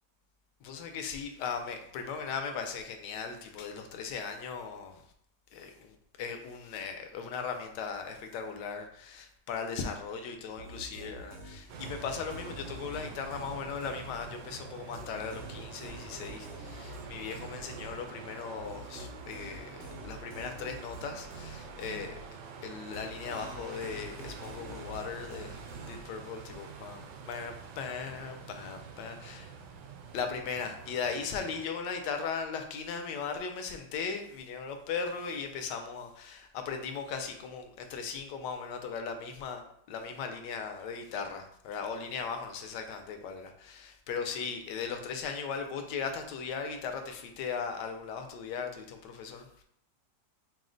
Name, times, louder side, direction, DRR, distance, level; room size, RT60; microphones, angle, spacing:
voice 1, 0.6-5.0 5.5-22.2 22.6-29.5 30.1-49.6, left 5 dB, 75° left, 5 dB, 1.2 m, -38 dB
sound 1, 10.6-14.5 14.9-22.6 22.9-26.4, right 1 dB, 60° right, 0.7 m, -47 dB
sound 2, 11.7-31.7, right 5 dB, 75° right, 1.1 m, -47 dB
4.7 x 2.1 x 3.8 m, 0.69 s
omnidirectional pair, 2.0 m